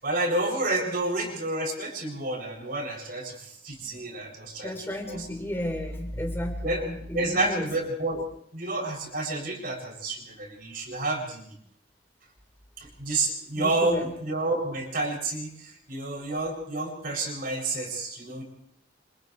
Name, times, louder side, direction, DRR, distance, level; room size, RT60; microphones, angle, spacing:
voice 1, 0.0-4.7 5.1-5.2 6.6-8.2 8.5-11.5 12.8-18.4, right 2 dB, 50° right, 1 dB, 7.8 m, -30 dB
voice 2, 4.6-7.7 8.1-8.2 13.6-14.1, left 1 dB, 10° left, 2 dB, 4.3 m, -33 dB
29.0 x 29.0 x 3.4 m, 0.66 s
head